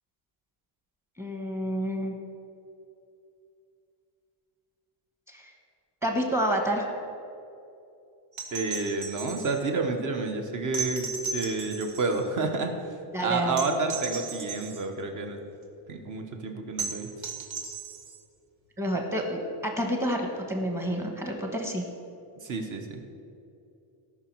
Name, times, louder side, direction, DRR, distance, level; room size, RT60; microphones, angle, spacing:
voice 1, 1.2-2.1 5.3-5.5 6.0-6.8 13.1-13.8 18.8-21.8, equal, 5° right, 2 dB, 1.2 m, -29 dB
sound 1, 8.3-9.6 10.7-12.3 13.6-14.8 16.8-18.2 20.1-20.2, right 5 dB, 85° right, 1.6 m, -36 dB
voice 2, 8.5-12.7 13.2-15.4 15.9-17.1 22.4-23.0, right 3 dB, 40° right, 4 dB, 1.2 m, -30 dB
17.5 x 5.9 x 4.7 m, 2.6 s
cardioid pair, 165°, 47 cm